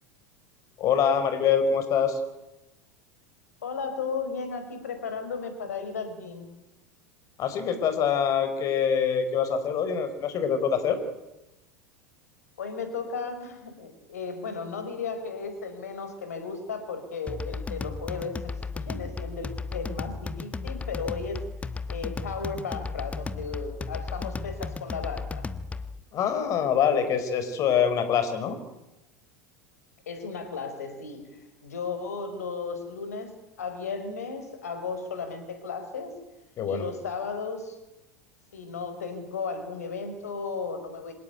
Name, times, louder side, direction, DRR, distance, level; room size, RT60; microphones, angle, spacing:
voice 1, 0.8-2.2 7.4-11.0 26.1-28.6 36.6-36.9, left 7 dB, 40° left, 10 dB, 4.8 m, -25 dB
voice 2, 3.6-6.5 12.6-21.4 21.9-25.5 30.1-36.2 36.6-37.8 38.5-41.1, left 5 dB, 70° left, 9 dB, 5.2 m, -35 dB
sound 1, 17.3-26.0, left 4 dB, 15° left, 1.4 m, -35 dB
26.0 x 18.0 x 9.3 m, 0.95 s
figure-of-eight pair, 80°, 9 cm